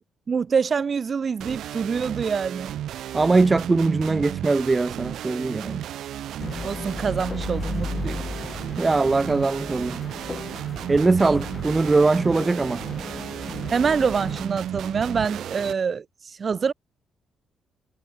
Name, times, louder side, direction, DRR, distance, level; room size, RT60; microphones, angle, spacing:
voice 1, 0.3-2.7 6.6-8.2 11.2-11.4 13.7-16.7, right 6 dB, 40° right, 1.7 m, -25 dB
sound 1, 1.4-15.7, right 11 dB, 75° right, 3.2 m, -34 dB
voice 2, 3.1-5.9 8.8-10.0 10.9-12.8, right 3 dB, 25° right, 0.5 m, -21 dB
sound 2, 6.4-14.4, left 4 dB, 30° left, 5.4 m, -36 dB
cardioid pair, 90°, 0 cm